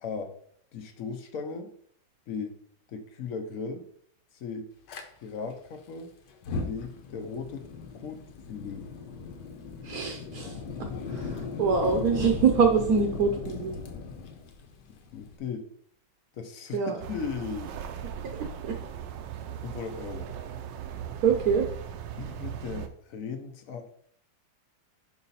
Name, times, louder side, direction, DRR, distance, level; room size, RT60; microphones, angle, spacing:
voice 1, 0.0-0.4 0.7-1.7 2.3-2.6 2.9-3.9 4.3-4.7 5.2-6.1 6.6-7.7 7.9-8.9 15.1-15.7 16.3-16.8 17.1-17.8 19.6-20.3 22.2-23.9, left 5 dB, 60° left, 7 dB, 0.9 m, -37 dB
Fire, 4.9-5.0 6.3-15.4, left 4 dB, 80° left, 1.4 m, -37 dB
voice 2, 9.8-13.8 16.7-17.0 18.3-18.8 21.2-21.7, right 6 dB, 65° right, 4 dB, 1.1 m, -25 dB
sound 1, 17.0-22.9, right 8 dB, 85° right, 1.3 m, -38 dB
5.5 x 4.9 x 4.1 m, 0.64 s
omnidirectional pair, 1.9 m